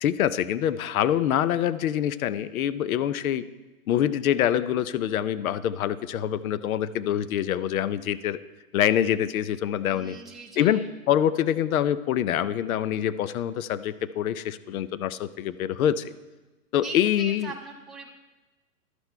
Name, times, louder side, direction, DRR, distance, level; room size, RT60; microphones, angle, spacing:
voice 1, 0.0-3.5 3.9-8.4 8.7-10.2 10.6-16.1 16.7-17.5, left 10 dB, 70° left, 16 dB, 0.6 m, -25 dB
voice 2, 9.9-10.9 16.8-18.1, right 4 dB, ahead, -3 dB, 0.6 m, -40 dB
11.5 x 5.9 x 4.4 m, 1.2 s
hypercardioid pair, 140°, 43 cm